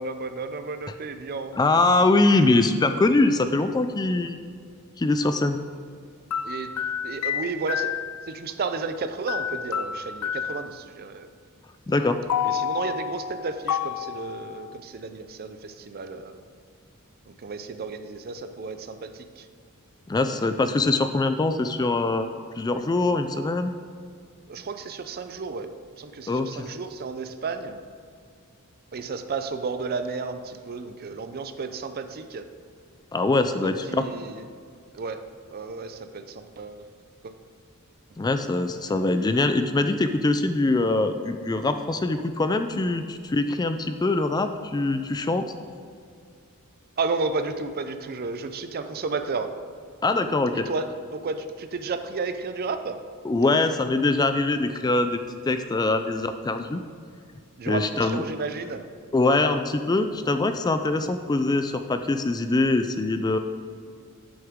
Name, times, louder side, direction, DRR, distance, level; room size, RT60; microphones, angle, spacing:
voice 1, 0.0-1.6 6.4-6.7 7.0-7.9 8.3-11.3 12.4-16.3 17.3-19.5 24.5-27.8 28.9-32.5 33.6-34.4 34.9-35.2 35.5-36.9 37.2-37.3 47.0-49.5 50.5-50.9 51.1-53.0 57.6-58.9, right 4 dB, 45° right, 9 dB, 0.5 m, -32 dB
voice 2, 1.6-4.4 5.0-5.6 11.9-12.2 20.1-22.3 22.6-23.7 26.3-26.7 33.1-34.1 38.2-45.4 50.0-50.7 53.2-55.2 55.5-56.8 57.7-58.2 59.1-63.4, left 2 dB, 20° left, 8 dB, 0.3 m, -23 dB
sound 1, 5.2-5.4 6.3-8.3 9.3-10.8 12.3-14.8, left 8 dB, 85° left, 0.4 m, -30 dB
8.7 x 7.1 x 3.6 m, 2.2 s
head